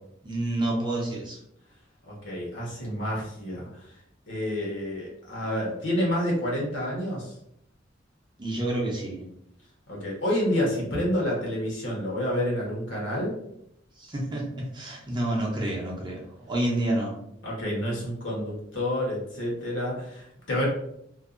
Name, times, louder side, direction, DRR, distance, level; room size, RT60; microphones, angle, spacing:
voice 1, 0.2-1.4 8.4-9.3 14.0-17.2, right 1 dB, 25° right, -3 dB, 0.6 m, -29 dB
voice 2, 2.0-3.7 4.3-7.3 9.9-13.4 17.4-20.7, equal, 70° left, -3 dB, 1.0 m, -29 dB
2.5 x 2.2 x 2.4 m, 0.75 s
head